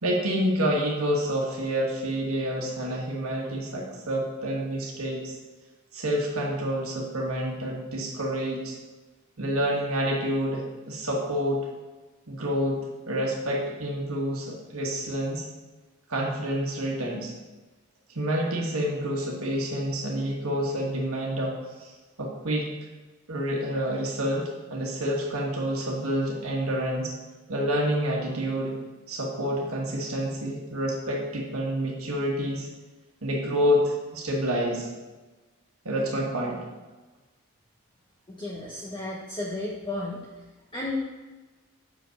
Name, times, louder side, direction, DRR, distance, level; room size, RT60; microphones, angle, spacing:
voice 1, 0.0-5.4 5.9-8.8 9.4-11.7 12.3-12.8 13.1-15.5 16.1-17.3 18.1-21.9 22.2-22.7 23.3-27.1 27.5-28.8 29.1-32.7 33.2-34.9 35.8-36.7, equal, 75° right, -2 dB, 1.4 m, -28 dB
voice 2, 38.3-40.3 40.7-41.0, left 2 dB, 20° left, -4 dB, 0.9 m, -33 dB
6.3 x 5.3 x 6.4 m, 1.2 s
head